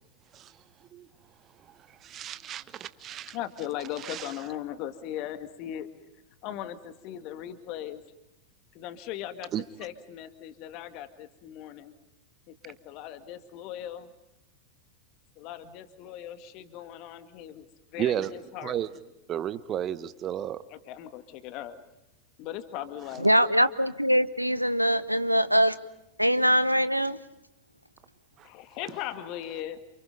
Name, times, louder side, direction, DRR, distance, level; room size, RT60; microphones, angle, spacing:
voice 1, 2.0-3.4 4.0-4.3 9.5-9.6 18.0-18.3 18.6-18.9 19.3-20.6 28.4-28.5, right 10 dB, 30° right, 14 dB, 1.2 m, -32 dB
voice 2, 3.3-5.9 6.4-8.0 8.7-11.9 12.5-14.1 15.4-17.7 17.9-18.9 20.7-21.8 22.4-23.3 28.4-29.8, left 11 dB, 40° left, 9 dB, 2.0 m, -38 dB
voice 3, 23.2-25.8 26.2-27.2, equal, 90° right, 14 dB, 1.0 m, -23 dB
29.5 x 28.0 x 5.4 m, 0.85 s
figure-of-eight pair, 90°, 0 cm